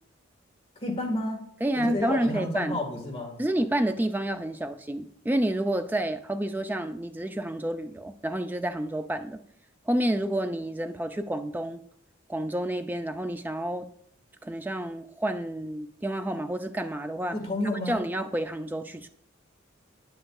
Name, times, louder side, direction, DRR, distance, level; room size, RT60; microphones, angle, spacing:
voice 1, 0.8-1.5 1.8-3.4 17.3-18.0, left 1 dB, 25° left, -1 dB, 1.7 m, -30 dB
voice 2, 1.6-2.8 3.4-9.4 9.9-11.8 12.3-13.8 14.4-17.4 17.9-19.1, right 1 dB, 10° right, 8 dB, 0.3 m, -29 dB
8.9 x 7.7 x 2.3 m, 0.67 s
head